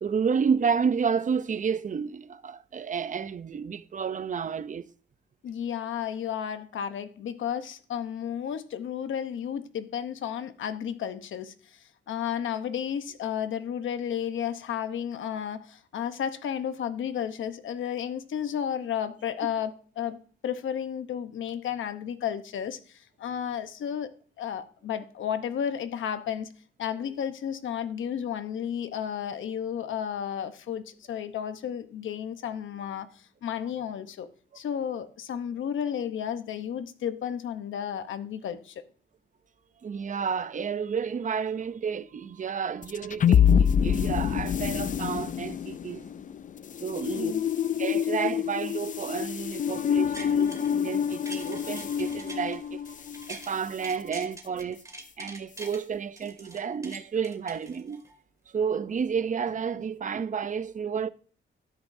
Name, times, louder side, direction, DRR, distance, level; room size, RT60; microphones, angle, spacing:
voice 1, 0.0-4.9 39.8-46.1 46.8-47.5 47.8-54.8 55.2-58.0 58.5-61.1, right 6 dB, 40° right, 0.6 m, -31 dB
voice 2, 5.4-20.2 20.4-24.1 24.4-26.5 26.8-34.3 34.5-38.8 47.1-47.4, left 9 dB, 90° left, 0.9 m, -33 dB
sound 1, 42.8-53.3, left 8 dB, 40° left, 0.4 m, -26 dB
sound 2, 49.9-50.8 51.1-53.5 53.8-55.8 56.2-58.2 58.6-58.7, right 2 dB, 15° right, 2.2 m, -45 dB
12.5 x 10.5 x 2.7 m
cardioid pair, 100°, 20 cm